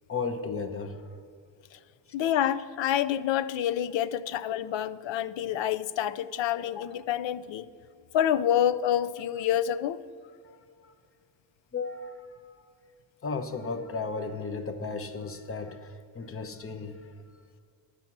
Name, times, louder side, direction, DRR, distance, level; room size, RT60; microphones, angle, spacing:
voice 1, 0.1-1.0 11.7-12.3 13.2-17.0, left 4 dB, 30° left, 0.8 m, -34 dB
voice 2, 2.1-7.6 8.1-10.0, left 10 dB, 90° left, 0.5 m, -27 dB
11.5 x 7.8 x 5.9 m
wide cardioid pair, 140°, 44 cm